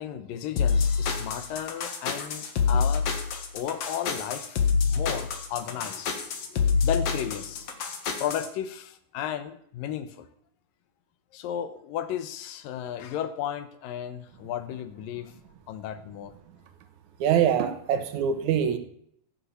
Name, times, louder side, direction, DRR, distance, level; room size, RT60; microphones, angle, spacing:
voice 1, 0.0-3.2 3.5-7.7 8.2-10.3 11.3-15.3 15.7-16.3, left 10 dB, 75° left, 2.6 m, -34 dB
sound 1, 0.6-8.5, left 5 dB, 50° left, 2.3 m, -26 dB
voice 2, 17.2-18.8, right 8 dB, 60° right, 2.4 m, -24 dB
17.5 x 7.2 x 7.1 m
omnidirectional pair, 4.3 m